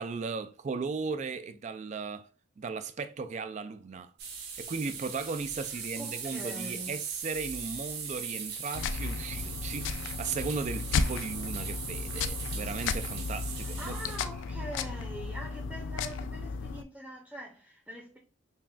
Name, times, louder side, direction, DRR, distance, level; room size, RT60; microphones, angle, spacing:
voice 1, 0.0-2.3 2.6-4.1 4.6-14.0, right 4 dB, 35° right, 0.3 m, -36 dB
sound 1, 4.2-14.2, right 6 dB, 50° right, 0.7 m, -40 dB
voice 2, 5.7-7.0 13.6-18.2, right 1 dB, 5° right, 0.7 m, -44 dB
sound 2, 8.7-16.8, left 4 dB, 70° left, 0.3 m, -34 dB
5.5 x 2.3 x 2.4 m
head